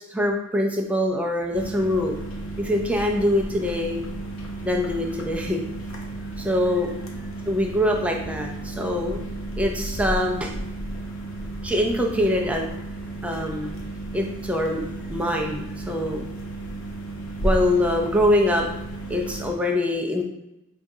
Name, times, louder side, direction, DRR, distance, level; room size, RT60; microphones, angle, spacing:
voice 1, 0.1-2.2 2.6-4.1 4.6-5.6 6.4-6.9 7.5-9.2 9.6-10.5 11.6-12.7 13.2-13.7 14.1-14.8 15.1-16.3 17.4-18.7 19.1-20.2, left 1 dB, 5° right, 1 dB, 0.3 m, -24 dB
sound 1, 1.5-19.5, right 1 dB, 75° left, 0.6 m, -33 dB
4.9 x 2.3 x 2.7 m, 0.90 s
head